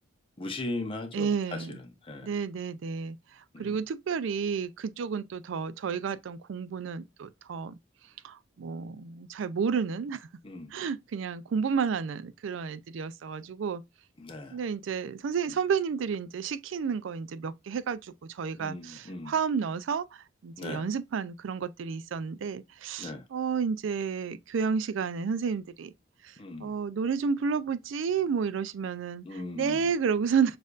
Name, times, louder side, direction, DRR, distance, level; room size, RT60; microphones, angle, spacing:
voice 1, 0.4-2.3 3.5-3.8 10.4-10.7 14.2-14.6 15.5-15.6 18.6-19.4 20.6-20.9 23.0-23.2 26.4-26.7 29.2-29.9, left 2 dB, 25° left, 0.7 m, -38 dB
voice 2, 1.1-1.7 2.2-3.2 3.6-7.7 8.2-10.2 10.7-13.8 14.5-20.0 20.4-25.9 26.6-30.6, right 6 dB, 70° right, 0.4 m, -31 dB
6.3 x 2.5 x 2.4 m
head